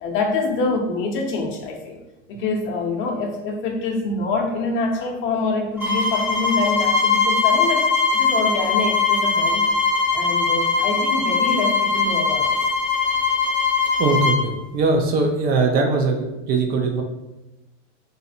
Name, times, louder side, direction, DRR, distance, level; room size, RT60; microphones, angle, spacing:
voice 1, 0.0-2.0 2.3-9.7 10.1-12.5, left 3 dB, 35° left, 2 dB, 0.6 m, -25 dB
sound 1, 5.8-14.4, left 4 dB, 5° right, 1.2 m, -20 dB
voice 2, 14.0-17.0, right 3 dB, 30° right, 2 dB, 0.4 m, -21 dB
2.7 x 2.5 x 4.1 m, 1.0 s
supercardioid pair, 135°, 33 cm